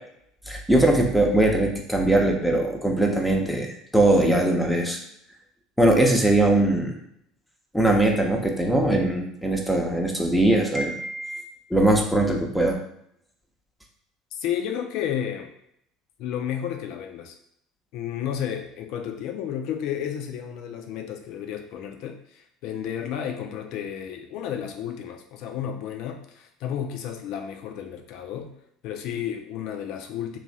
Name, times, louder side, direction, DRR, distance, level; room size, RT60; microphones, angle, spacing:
voice 1, 0.5-5.0 5.8-6.9 7.7-11.4 11.7-12.8, right 1 dB, 5° left, 0 dB, 0.7 m, -21 dB
voice 2, 14.3-15.5 16.2-17.3 17.9-28.5 28.8-30.4, left 9 dB, 55° left, 5 dB, 0.5 m, -32 dB
3.0 x 2.5 x 4.0 m, 0.72 s
figure-of-eight pair, 65°, 0 cm